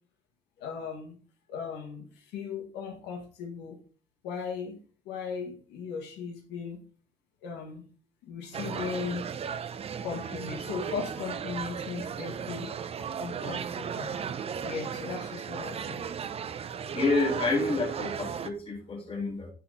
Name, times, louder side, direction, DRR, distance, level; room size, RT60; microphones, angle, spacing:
voice 1, 0.6-1.2 1.5-3.8 4.2-4.8 5.0-6.8 7.4-7.9 8.2-9.2 10.0-12.7 13.2-14.1 14.6-16.0, left 6 dB, 85° left, 1 dB, 1.7 m, -37 dB
sound 1, 8.5-18.5, right 7 dB, 35° right, 0.6 m, -36 dB
voice 2, 16.9-19.5, left 3 dB, 35° left, 0 dB, 2.6 m, -28 dB
10.0 x 4.0 x 3.9 m, 0.39 s
cardioid pair, 110°, 17 cm